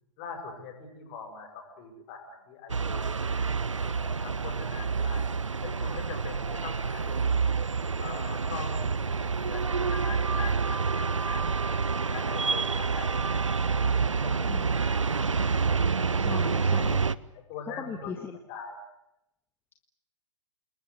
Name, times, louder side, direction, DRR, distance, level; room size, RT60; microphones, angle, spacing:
voice 1, 0.2-3.2 3.8-5.2 5.6-7.3 8.0-11.8 12.1-13.4 13.7-16.7 17.3-18.1 18.5-18.7, left 5 dB, 35° left, 5 dB, 7.3 m, -43 dB
sound 1, 2.7-17.1, right 5 dB, 75° right, 0.9 m, -28 dB
voice 2, 16.2-17.0 17.8-18.4, left 6 dB, 15° left, 5 dB, 1.7 m, -38 dB
29.0 x 21.0 x 8.3 m, 0.84 s
figure-of-eight pair, 110°, 16 cm